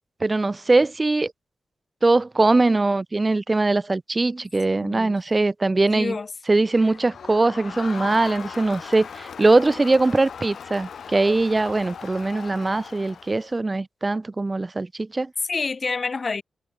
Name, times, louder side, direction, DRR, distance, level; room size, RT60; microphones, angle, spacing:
voice 1, 0.2-1.3 2.0-6.2 6.5-15.3, right 2 dB, 25° right, 0.6 m, -21 dB
voice 2, 4.8-5.2 5.9-6.3 15.5-16.4, left 4 dB, 40° left, 0.6 m, -28 dB
Crowd, 6.7-13.6, left 7 dB, 70° left, 1.0 m, -38 dB
wide cardioid pair, 130°, 0 cm